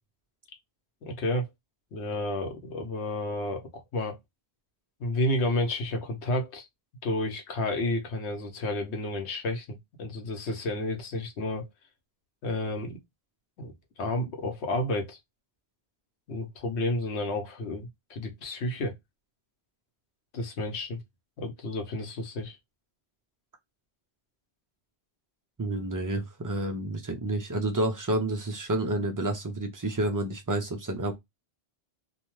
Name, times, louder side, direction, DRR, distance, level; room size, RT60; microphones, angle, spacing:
voice 1, 1.0-1.5 1.9-4.2 5.0-6.7 7.0-11.7 12.4-13.0 13.6-15.2 16.3-18.9 20.3-21.0 21.4-22.6, left 1 dB, 85° left, 1.1 m, -31 dB
voice 2, 25.6-31.1, right 1 dB, 30° right, 0.3 m, -29 dB
2.7 x 2.2 x 3.0 m
omnidirectional pair, 1.1 m